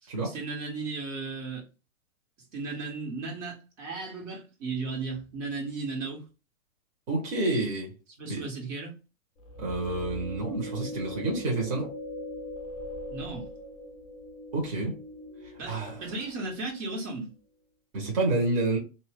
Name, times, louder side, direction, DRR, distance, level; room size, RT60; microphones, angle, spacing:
voice 1, 0.0-1.6 2.5-6.2 8.2-8.9 10.9-11.0 13.1-13.5 15.6-17.3, right 3 dB, 65° right, 1.5 m, -35 dB
voice 2, 7.1-7.9 8.2-8.4 9.6-11.9 14.5-14.9 15.7-15.9 17.9-18.8, right 2 dB, 45° right, 1.2 m, -28 dB
sound 1, 9.4-16.7, left 1 dB, 15° left, 0.5 m, -41 dB
2.7 x 2.2 x 3.4 m
hypercardioid pair, 135°, 40 cm